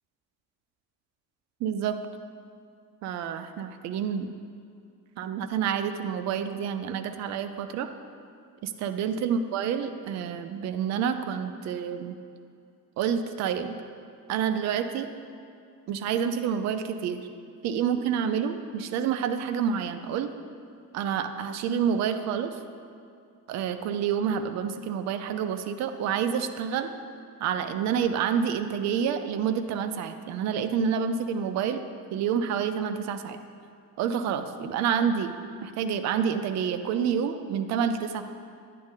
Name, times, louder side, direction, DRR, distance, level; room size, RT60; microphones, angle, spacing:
voice 1, 1.6-2.0 3.0-4.3 5.2-7.9 8.6-12.2 13.0-13.8 14.3-15.1 15.9-17.2 17.6-20.3 20.9-22.6 23.5-26.9 27.4-31.8 32.1-33.4 34.0-35.3 35.6-38.2, right 7 dB, 35° right, 9 dB, 0.4 m, -28 dB
9.4 x 3.3 x 3.9 m, 2.4 s
figure-of-eight pair, 50°, 49 cm